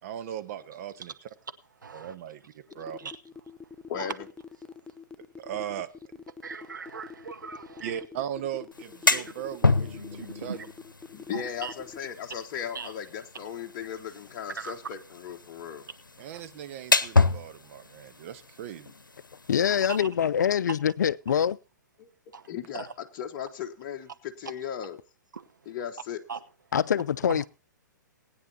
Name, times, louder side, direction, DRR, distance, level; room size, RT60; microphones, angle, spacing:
voice 1, 0.0-1.1 1.9-3.1 5.4-5.9 7.8-10.6 16.2-18.9, right 10 dB, 45° right, 1.2 m, -38 dB
voice 2, 1.8-2.2 3.0-3.1 4.0-4.1 6.4-8.0 9.1-9.3 10.2-10.7 11.3-11.7 12.7-12.9 14.6-14.7 16.3-16.4 19.9-20.1 22.3-22.5 22.7-22.9 25.3-25.5 26.3-26.4 27.3-27.4, right 5 dB, 75° right, 1.1 m, -39 dB
sound 1, 2.7-12.0, left 5 dB, 10° left, 0.5 m, -45 dB
voice 3, 3.9-4.3 9.2-9.5 11.1-15.9 22.0-22.1 22.5-25.0 25.7-26.2, left 8 dB, 35° left, 1.2 m, -37 dB
sound 2, 8.7-20.0, left 3 dB, 90° left, 0.8 m, -30 dB
voice 4, 19.5-21.6 26.7-27.5, left 8 dB, 65° left, 0.5 m, -24 dB
20.0 x 9.6 x 2.8 m
figure-of-eight pair, 120°, 10 cm